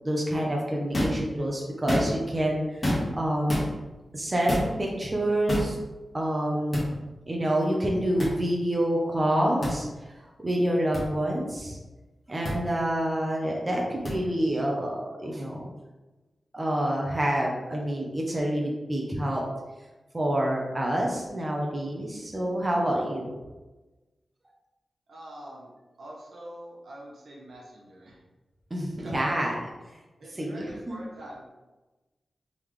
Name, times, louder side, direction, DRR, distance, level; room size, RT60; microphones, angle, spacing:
voice 1, 0.0-2.8 3.1-3.8 4.1-5.8 6.1-9.9 10.4-11.8 12.3-15.6 16.5-19.4 20.1-23.3 28.7-29.5 30.3-31.0, right 1 dB, 20° right, -2 dB, 0.7 m, -27 dB
sound 1, 0.9-1.2 1.7-2.3 2.8-3.2 3.5-3.7 4.5-4.7 5.5-5.7 6.7-6.9 8.2-8.3 9.6-9.8 10.9-11.0 12.4-12.6 14.1-14.2, left 1 dB, 35° left, 1.4 m, -27 dB
voice 2, 25.1-25.7 26.0-28.2 29.0-29.4 30.2-31.4, right 1 dB, 80° right, -5 dB, 1.3 m, -44 dB
3.8 x 3.4 x 3.1 m, 1.1 s
wide cardioid pair, 125°, 0 cm